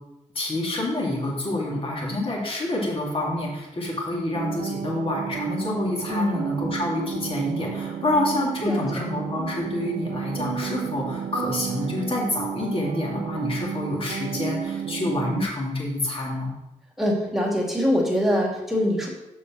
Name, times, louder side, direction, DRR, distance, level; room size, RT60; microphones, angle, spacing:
voice 1, 0.3-16.5, left 1 dB, 45° left, -3 dB, 2.4 m, -27 dB
sound 1, 4.3-15.4, right 7 dB, 85° right, 0.6 m, -32 dB
voice 2, 8.6-9.0 17.0-19.1, left 1 dB, 5° right, -3 dB, 2.3 m, -23 dB
6.8 x 4.7 x 6.0 m, 0.96 s
cardioid pair, 95°, 13 cm